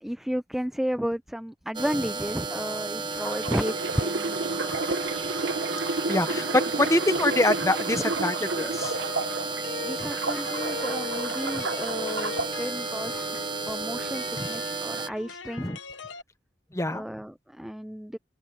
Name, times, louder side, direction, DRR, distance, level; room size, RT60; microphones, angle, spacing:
voice 1, 0.0-4.9 6.1-6.5 9.8-13.3 13.7-15.7 16.9-18.2, equal, ahead, 0.4 m, -33 dB
sound 1, 1.7-15.1, right 4 dB, 25° right, 1.2 m, -33 dB
sound 2, 3.1-9.6 10.0-12.5 13.1-13.4, right 3 dB, 70° right, 1.1 m, -31 dB
voice 2, 6.1-9.0 10.0-10.1 11.6-11.7 14.4-14.5 15.6-15.8 16.7-17.0, left 2 dB, 15° left, 1.3 m, -25 dB
sound 3, 8.8-16.2, left 5 dB, 70° left, 1.1 m, -39 dB
head